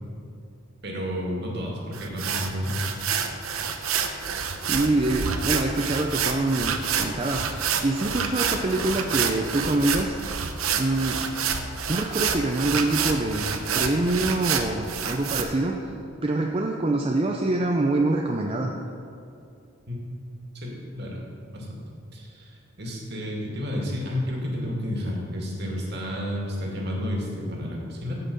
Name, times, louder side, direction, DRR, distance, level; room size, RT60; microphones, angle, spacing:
voice 1, 0.8-3.0 19.9-20.0 20.5-21.2 21.5-21.8 22.1-28.1, equal, 50° right, -2 dB, 2.1 m, -31 dB
sound 1, 1.9-15.4, right 6 dB, 85° right, 0.8 m, -28 dB
voice 2, 4.6-7.5 7.8-10.2 10.7-11.3 11.9-15.8 16.2-18.7, right 2 dB, 25° right, 1 dB, 0.5 m, -25 dB
15.0 x 5.8 x 5.3 m, 2.5 s
head